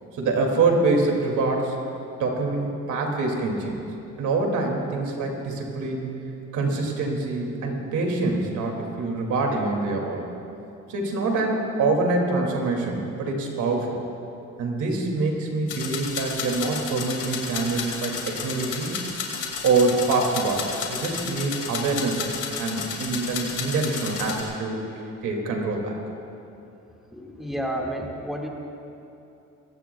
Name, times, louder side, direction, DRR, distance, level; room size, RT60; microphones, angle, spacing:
voice 1, 0.1-1.8 2.2-3.8 4.2-6.1 6.5-10.2 10.9-14.0 14.6-19.0 19.6-22.2 22.6-24.8 25.2-26.0, right 3 dB, 80° right, 1 dB, 2.4 m, -25 dB
sound 1, 15.7-24.4, left 6 dB, 90° left, 2.3 m, -32 dB
voice 2, 27.1-28.5, right 1 dB, ahead, -1 dB, 1.9 m, -30 dB
23.0 x 16.5 x 2.3 m, 2.8 s
cardioid pair, 90°, 30 cm